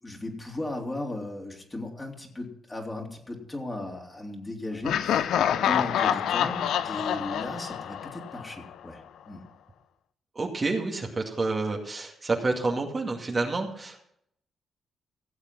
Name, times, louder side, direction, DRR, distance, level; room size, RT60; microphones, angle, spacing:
voice 1, 0.0-5.3 5.5-9.4, left 2 dB, 25° left, 0 dB, 3.4 m, -36 dB
Laughter, 4.8-8.7, left 9 dB, 75° left, 0.6 m, -27 dB
voice 2, 10.3-14.0, right 3 dB, 35° right, 1 dB, 2.3 m, -29 dB
16.5 x 7.3 x 6.1 m, 0.72 s
supercardioid pair, 55°, 0 cm